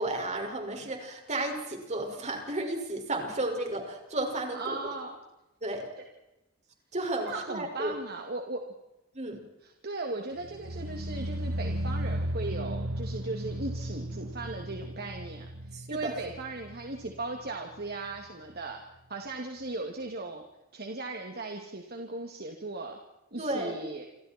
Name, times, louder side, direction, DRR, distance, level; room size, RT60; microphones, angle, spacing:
voice 1, 0.0-4.9 5.6-5.9 6.9-7.9 9.1-9.4 15.7-16.1 23.4-23.7, right 2 dB, 35° right, 3 dB, 5.9 m, -33 dB
voice 2, 4.5-5.2 7.2-8.6 9.6-18.8 19.1-20.4 20.7-23.0 23.3-24.0, right 2 dB, 50° right, 3 dB, 2.7 m, -37 dB
sound 1, 10.4-17.5 17.8-18.2 18.6-18.7, right 1 dB, 80° right, 1.6 m, -35 dB
29.5 x 26.0 x 4.6 m, 0.94 s
head